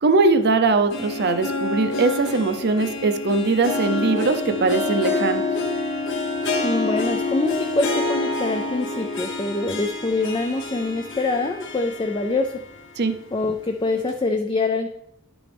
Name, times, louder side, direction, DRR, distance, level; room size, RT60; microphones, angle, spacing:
voice 1, 0.0-5.4 13.0-13.1, right 3 dB, 50° right, 9 dB, 0.7 m, -20 dB
Harp, 0.6-12.8 13.1-13.2 14.1-14.2, left 3 dB, 60° left, 0.9 m, -27 dB
voice 2, 6.6-12.6 13.3-14.9, left 3 dB, 20° left, 4 dB, 0.4 m, -25 dB
10.0 x 6.1 x 3.4 m, 0.78 s
head